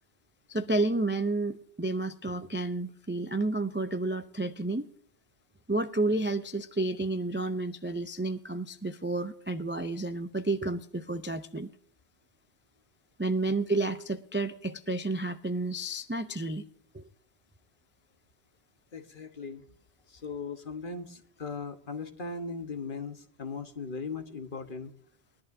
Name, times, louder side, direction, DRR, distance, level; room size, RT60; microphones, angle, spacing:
voice 1, 0.5-4.9 5.7-11.7 13.2-16.6 16.9-17.0, right 2 dB, 15° right, 8 dB, 0.4 m, -31 dB
voice 2, 18.9-19.6 20.1-24.9, left 4 dB, 55° left, 7 dB, 1.4 m, -38 dB
21.0 x 11.5 x 2.7 m, 0.63 s
omnidirectional pair, 1.1 m